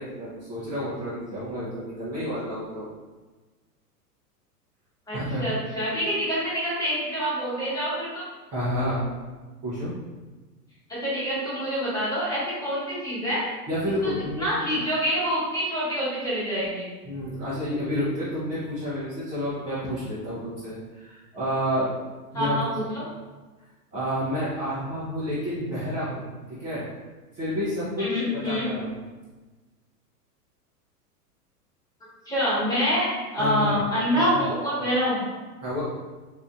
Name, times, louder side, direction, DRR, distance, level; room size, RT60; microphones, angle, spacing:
voice 1, 0.0-2.9 5.1-5.5 8.5-9.1 9.6-9.9 13.7-14.5 14.7-14.8 17.0-22.0 22.3-22.6 23.9-26.8 27.3-28.1 28.3-29.0 33.4-33.9 34.1-34.4 34.8-34.9 35.6-35.8, equal, 10° right, -11 dB, 0.4 m, -30 dB
voice 2, 5.1-8.2 10.9-13.5 14.0-14.1 14.4-16.9 22.3-23.0 28.0-28.7 32.3-35.2, equal, 5° left, -8 dB, 1.2 m, -26 dB
4.1 x 2.5 x 2.3 m, 1.3 s
figure-of-eight pair, 105°, 48 cm